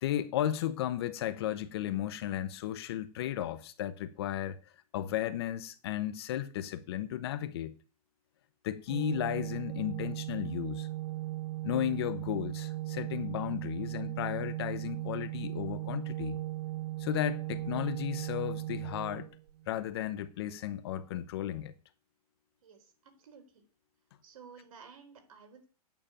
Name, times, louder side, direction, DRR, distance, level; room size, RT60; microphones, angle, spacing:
voice 1, 0.0-7.7 8.6-10.9 11.6-16.4 17.0-19.3 19.7-21.7, left 11 dB, 40° left, 0.9 m, -34 dB
Organ, 8.9-19.8, right 16 dB, 85° right, 0.5 m, -37 dB
voice 2, 22.6-23.6 24.2-25.6, right 6 dB, 60° right, 4.2 m, -54 dB
9.2 x 6.8 x 8.8 m
hypercardioid pair, 170°, 20 cm